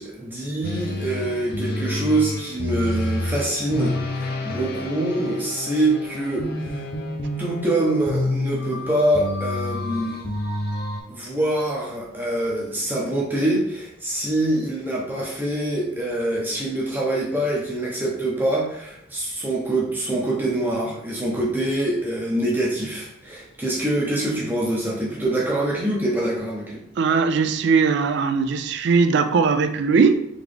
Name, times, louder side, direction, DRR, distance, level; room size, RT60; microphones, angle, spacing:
voice 1, 0.0-6.9 7.4-10.2 11.1-26.8, right 1 dB, 10° right, -4 dB, 0.7 m, -25 dB
sound 1, 0.6-11.0, left 2 dB, 50° left, 0.6 m, -29 dB
voice 2, 27.0-30.3, right 5 dB, 55° right, 10 dB, 0.3 m, -19 dB
3.9 x 2.9 x 3.3 m, 0.74 s
head